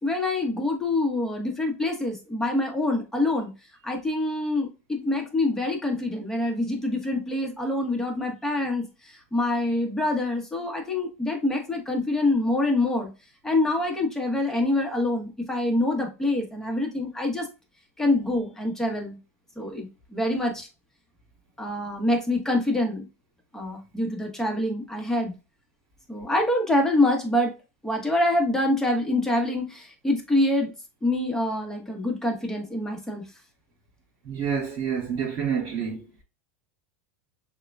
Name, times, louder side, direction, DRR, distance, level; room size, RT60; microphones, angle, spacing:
voice 1, 0.0-3.5 3.8-13.1 13.4-17.5 18.0-19.2 19.6-20.7 21.6-23.1 23.5-25.3 26.1-27.5 27.8-30.7 31.0-33.2, left 2 dB, 5° left, 1.0 m, -25 dB
voice 2, 34.3-36.1, right 7 dB, 40° right, 2.0 m, -28 dB
6.5 x 2.2 x 2.3 m
supercardioid pair, 115°, 8 cm